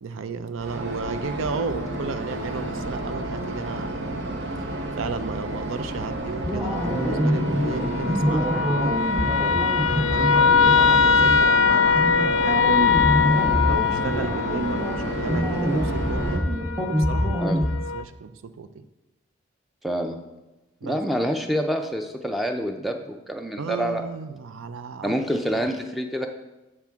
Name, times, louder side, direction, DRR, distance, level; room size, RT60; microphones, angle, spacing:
voice 1, 0.0-4.3 4.9-9.1 9.9-16.5 16.9-17.5 17.9-18.9 20.8-21.0 23.6-25.1, right 5 dB, 90° right, 11 dB, 0.4 m, -34 dB
sound 1, 0.6-16.4, right 1 dB, 55° right, 0.8 m, -31 dB
sound 2, 6.4-17.7, equal, 20° right, 1.0 m, -26 dB
sound 3, 6.6-18.0, left 6 dB, 85° left, 0.4 m, -23 dB
voice 2, 10.2-10.5 17.4-17.7 19.8-20.2 20.8-24.0 25.0-26.3, equal, ahead, 4 dB, 0.4 m, -27 dB
7.5 x 6.0 x 3.5 m, 1.0 s
head